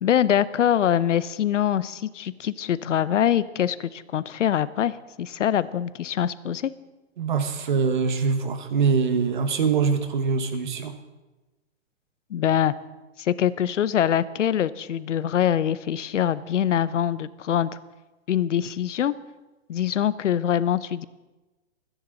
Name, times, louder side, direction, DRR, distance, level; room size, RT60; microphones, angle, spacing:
voice 1, 0.0-6.7 12.3-12.7 13.2-17.8 18.3-19.1 19.7-21.1, left 10 dB, 90° left, 16 dB, 0.8 m, -24 dB
voice 2, 7.2-10.9, right 5 dB, 40° right, 8 dB, 1.3 m, -23 dB
27.0 x 10.5 x 4.0 m, 1.1 s
hypercardioid pair, 175°, 36 cm